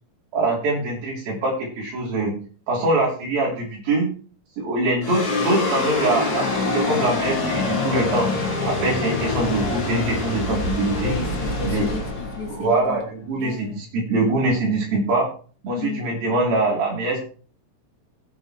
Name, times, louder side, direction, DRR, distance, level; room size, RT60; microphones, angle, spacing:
voice 1, 0.3-2.3 2.7-4.1 4.6-8.3 8.6-11.1 11.6-11.9 12.5-15.3 15.6-17.2, right 2 dB, 85° right, -1 dB, 4.9 m, -23 dB
sound 1, 5.0-13.5, left 3 dB, 30° left, 2.2 m, -25 dB
voice 2, 11.0-13.0 13.4-13.8 15.8-16.1, left 4 dB, 80° left, 2 dB, 3.6 m, -33 dB
17.0 x 7.1 x 3.1 m, 0.39 s
omnidirectional pair, 4.1 m